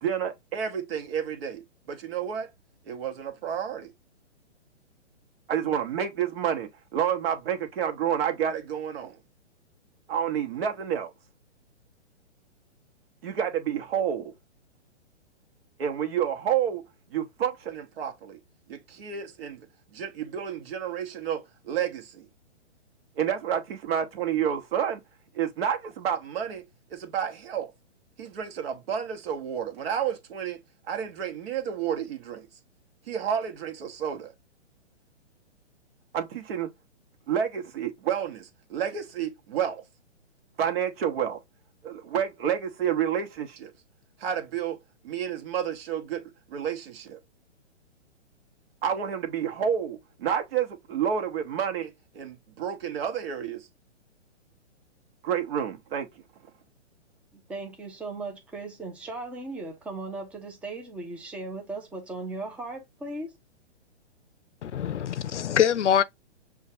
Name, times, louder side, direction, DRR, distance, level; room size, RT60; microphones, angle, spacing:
voice 1, 0.0-1.6 1.9-2.5 2.9-3.9 5.5-9.2 10.1-11.1 13.2-14.3 15.8-16.8 17.1-18.4 18.7-19.7 19.9-22.2 23.2-25.0 25.3-26.6 26.9-27.7 28.2-30.6 30.9-32.5 33.1-34.3 36.1-36.7 37.3-39.8 40.6-41.4 41.8-43.7 44.2-44.8 45.0-46.2 46.5-47.2 48.8-53.6 55.2-56.1, right 8 dB, 55° right, 1.1 m, -30 dB
voice 2, 57.3-63.3, right 2 dB, 5° right, 0.5 m, -37 dB
voice 3, 64.6-66.0, left 9 dB, 80° left, 0.6 m, -24 dB
6.2 x 2.3 x 2.7 m
hypercardioid pair, 130°, 35 cm